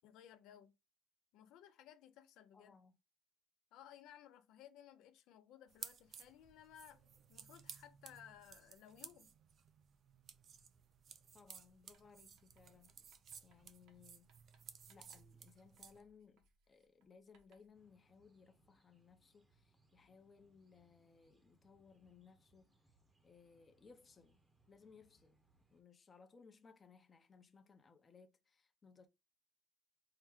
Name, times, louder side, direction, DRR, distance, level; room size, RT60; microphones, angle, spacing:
voice 1, 0.0-0.8 1.3-2.7 3.7-9.3, left 10 dB, 75° left, 0.6 m, -60 dB
voice 2, 2.5-3.0 11.3-13.2 13.4-14.3 14.9-22.9 23.2-24.4 24.7-25.4 25.7-29.1, left 5 dB, 25° left, 0.7 m, -64 dB
sound 1, 5.7-16.0, right 7 dB, 45° right, 0.5 m, -57 dB
Writing, 11.9-17.8, right 4 dB, 75° right, 1.0 m, -77 dB
sound 2, 17.7-25.8, right 2 dB, 20° right, 0.8 m, -76 dB
4.6 x 2.2 x 3.6 m
cardioid pair, 125°, 0 cm